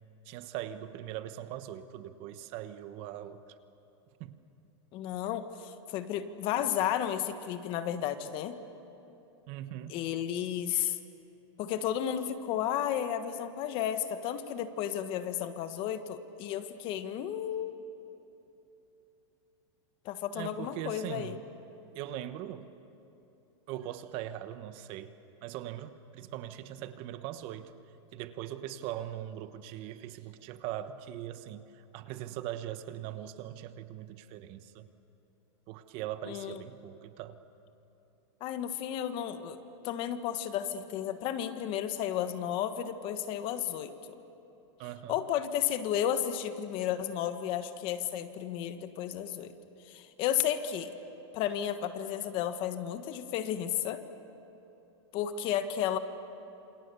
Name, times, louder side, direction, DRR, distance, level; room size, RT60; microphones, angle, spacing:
voice 1, 0.3-3.4 4.2-4.4 9.5-10.0 20.3-21.4 21.9-22.7 23.7-25.1 25.4-27.7 28.1-34.9 35.7-37.4 44.8-45.2, right 12 dB, 40° right, 11 dB, 1.1 m, -40 dB
voice 2, 4.9-8.5 9.9-11.0 11.6-17.8 20.0-21.4 36.2-36.6 38.4-39.6 39.8-43.9 45.1-49.5 49.8-50.9 51.3-54.0 55.1-56.0, left 10 dB, 35° left, 10 dB, 1.4 m, -33 dB
28.5 x 27.5 x 6.9 m, 2.9 s
supercardioid pair, 155°, 15 cm